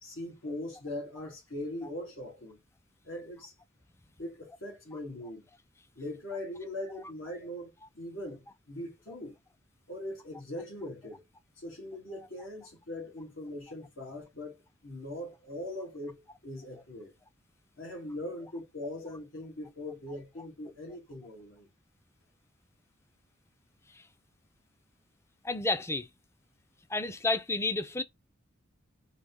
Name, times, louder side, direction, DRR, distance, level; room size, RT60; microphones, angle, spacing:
voice 1, 0.0-2.6 3.0-3.5 4.2-5.5 6.0-9.4 9.9-11.2 11.6-17.1 17.8-21.7, left 1 dB, 80° left, 1.8 m, -41 dB
voice 2, 25.4-26.1 26.9-28.0, left 2 dB, 15° left, 0.4 m, -30 dB
3.9 x 2.8 x 3.5 m
head